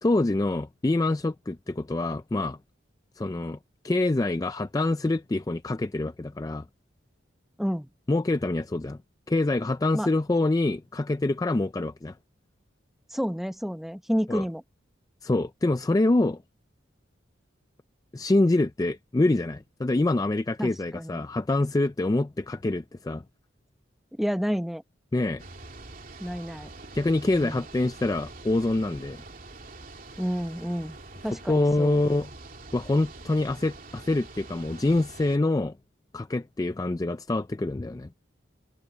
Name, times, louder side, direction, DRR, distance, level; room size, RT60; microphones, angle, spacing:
voice 1, 0.0-2.6 3.2-3.6 3.8-6.7 8.1-9.0 9.3-12.2 14.3-14.4 15.2-16.4 18.1-23.2 25.1-25.4 26.9-29.2 31.5-32.3 32.7-35.8 36.1-38.1, left 2 dB, 20° left, 0.3 m, -25 dB
voice 2, 7.6-7.9 9.9-10.1 13.1-14.6 20.6-21.2 24.1-24.8 26.2-26.7 27.3-27.6 30.2-31.0 31.2-32.0, equal, ahead, 1.1 m, -30 dB
sound 1, 25.4-35.4, right 2 dB, 45° right, 2.9 m, -45 dB
head